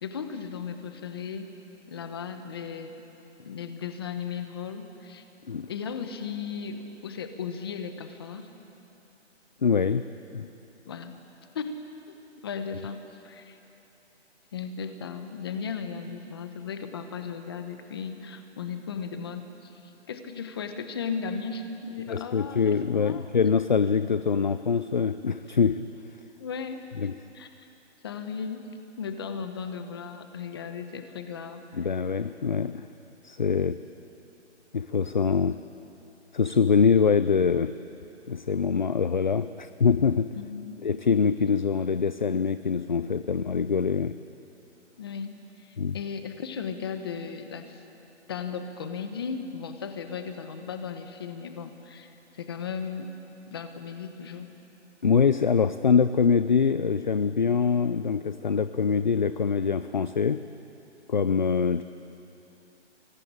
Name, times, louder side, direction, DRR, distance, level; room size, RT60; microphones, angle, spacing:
voice 1, 0.0-1.5 1.9-3.0 3.4-5.2 5.7-8.5 10.8-11.1 11.5-11.7 12.1-13.6 14.5-23.3 26.4-26.8 27.3-27.7 28.0-28.6 29.0-31.6 40.3-40.8 45.0-45.3 45.6-47.8 48.3-53.1 53.5-54.5, left 6 dB, 20° left, 8 dB, 1.0 m, -36 dB
voice 2, 9.6-10.1 10.3-10.5 22.1-25.9 27.0-27.2 31.7-32.9 33.2-33.8 34.7-35.6 36.3-37.8 38.3-40.3 40.8-44.2 45.8-46.0 55.0-60.4 61.1-61.8, left 6 dB, 40° left, 13 dB, 0.4 m, -24 dB
23.5 x 18.0 x 8.9 m, 3.0 s
hypercardioid pair, 170°, 35 cm